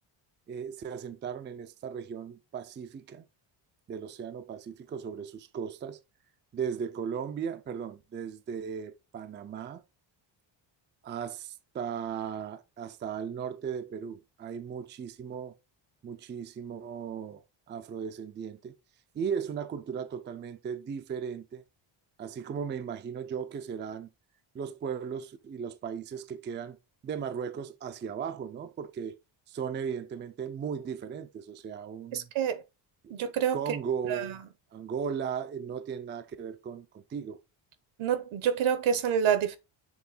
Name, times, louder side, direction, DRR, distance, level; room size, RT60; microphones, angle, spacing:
voice 1, 0.5-3.3 3.9-6.0 6.5-9.8 11.0-15.5 16.0-17.4 17.7-18.8 19.1-21.6 22.2-24.1 24.5-26.8 27.0-29.2 29.5-32.3 33.0-33.1 33.5-34.4 34.7-37.4, right 7 dB, 25° right, 0.4 m, -36 dB
voice 2, 32.1-32.6 33.1-33.6 34.1-34.3 38.0-39.6, right 8 dB, 75° right, 1.2 m, -27 dB
7.2 x 3.5 x 4.1 m
cardioid pair, 170°, 48 cm